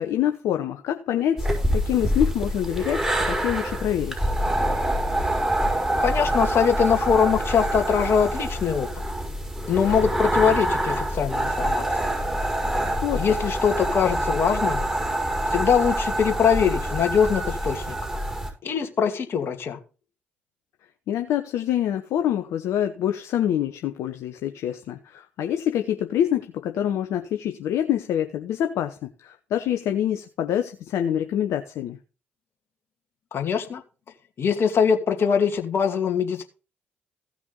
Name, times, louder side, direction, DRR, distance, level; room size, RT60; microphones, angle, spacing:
voice 1, 0.0-4.3 13.0-13.2 21.1-32.0, left 10 dB, 65° left, 0.9 m, -26 dB
sound 1, 1.4-18.5, right 1 dB, 10° right, 5.5 m, -26 dB
voice 2, 6.0-8.9 9.7-11.8 13.2-14.8 15.5-18.0 18.6-19.8 33.3-33.8 34.4-36.4, left 7 dB, 50° left, 2.4 m, -22 dB
16.5 x 6.0 x 3.9 m
hypercardioid pair, 45°, 5 cm